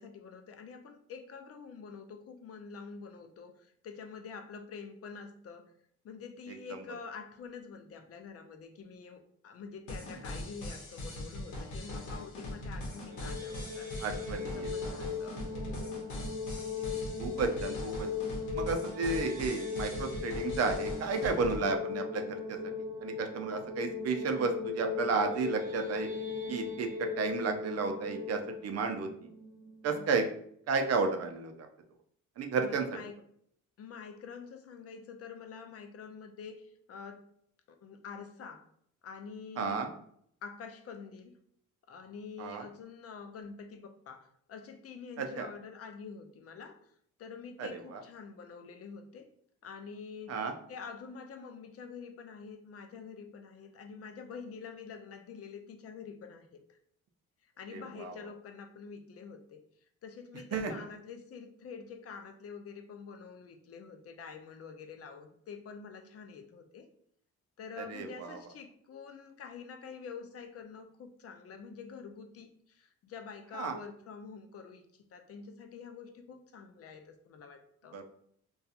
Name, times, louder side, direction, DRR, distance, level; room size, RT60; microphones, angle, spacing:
voice 1, 0.0-5.7 6.0-13.9 14.4-15.9 21.5-21.6 29.9-30.3 32.6-33.2 33.8-37.3 37.7-38.7 39.0-39.9 40.4-41.4 41.9-46.9 47.2-49.3 49.6-50.4 50.7-56.8 57.4-59.6 60.0-66.9 67.6-78.0, left 5 dB, 50° left, 6 dB, 0.5 m, -47 dB
sound 1, 9.9-21.6, left 1 dB, 75° left, 0.8 m, -41 dB
sound 2, 12.9-30.0, left 5 dB, 90° right, 0.8 m, -38 dB
voice 2, 14.0-14.9 16.8-18.1 18.5-22.6 23.0-26.1 26.5-29.3 29.8-30.2 30.7-31.5 32.4-32.9 39.6-39.9 42.4-42.6 45.2-45.5 47.6-48.0 50.3-50.5 57.7-58.1 60.5-60.7 67.8-68.4 73.5-73.8 77.9-78.0, right 4 dB, 55° right, 5 dB, 0.5 m, -33 dB
2.7 x 2.3 x 2.4 m, 0.66 s
cardioid pair, 90°, 30 cm